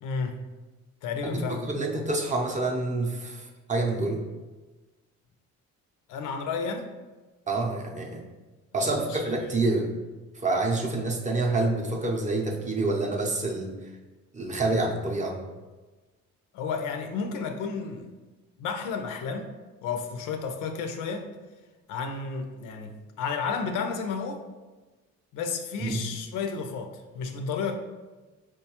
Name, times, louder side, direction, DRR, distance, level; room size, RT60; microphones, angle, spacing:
voice 1, 0.0-0.4 1.0-1.7 6.1-6.9 8.7-9.3 16.5-18.1 18.6-19.5 19.8-21.3 21.9-24.4 25.3-27.8, left 5 dB, 90° left, 6 dB, 0.5 m, -32 dB
voice 2, 1.2-4.2 7.5-8.2 8.7-9.9 10.3-13.8 14.3-15.4 25.8-26.0, right 2 dB, 25° right, 1 dB, 0.5 m, -27 dB
4.5 x 2.2 x 2.8 m, 1.2 s
cardioid pair, 90°, 30 cm